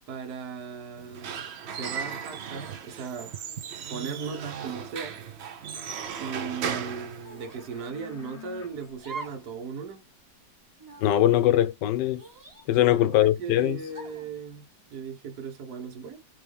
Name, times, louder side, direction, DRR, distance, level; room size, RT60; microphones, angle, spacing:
voice 1, 0.1-3.3 3.9-5.2 6.2-10.0 12.8-16.2, right 5 dB, 60° right, 1.4 m, -37 dB
Squeak / Wood, 1.0-7.9, right 7 dB, 85° right, 0.5 m, -36 dB
sound 1, 4.2-6.3 6.5-9.5, left 8 dB, 30° left, 0.7 m, -50 dB
sound 2, 4.9-5.3 6.0-6.2 7.2-7.6 9.0-9.5 9.8-9.9 10.8-11.2 12.1-13.1 13.9-14.3, right 3 dB, 25° right, 0.4 m, -43 dB
voice 2, 11.0-12.2 12.7-13.8, left 13 dB, 75° left, 1.2 m, -21 dB
3.4 x 3.1 x 3.3 m
omnidirectional pair, 2.0 m